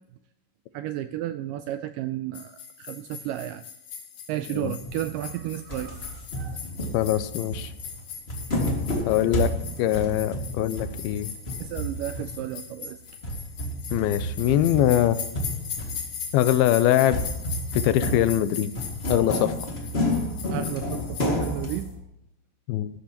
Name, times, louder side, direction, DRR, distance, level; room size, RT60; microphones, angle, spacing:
voice 1, 0.7-3.6 4.3-6.6 11.6-13.0 20.5-21.9, right 13 dB, 85° right, 11 dB, 1.9 m, -33 dB
sound 1, 2.3-21.8, left 7 dB, 60° left, 3.0 m, -39 dB
sound 2, 4.8-5.4 5.7-12.7 13.1-16.3 17.1-22.0, equal, 30° left, 1.2 m, -31 dB
voice 2, 6.9-7.7 9.1-9.5 9.8-11.3 13.9-15.2 16.3-17.2 17.7-18.7 19.1-19.5 22.7-22.9, left 12 dB, 90° left, 13 dB, 2.5 m, -22 dB
14.5 x 12.5 x 2.9 m, 0.83 s
omnidirectional pair, 4.3 m